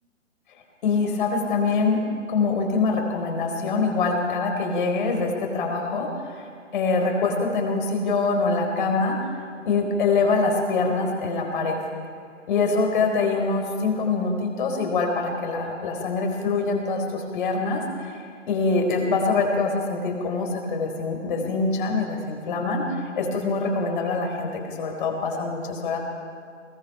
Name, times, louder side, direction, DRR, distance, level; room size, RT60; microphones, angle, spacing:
voice 1, 0.8-2.0 2.3-9.3 9.6-11.8 12.5-26.0, left 4 dB, 40° left, 2 dB, 4.3 m, -24 dB
23.5 x 21.0 x 5.7 m, 2.2 s
figure-of-eight pair, 135°, 38 cm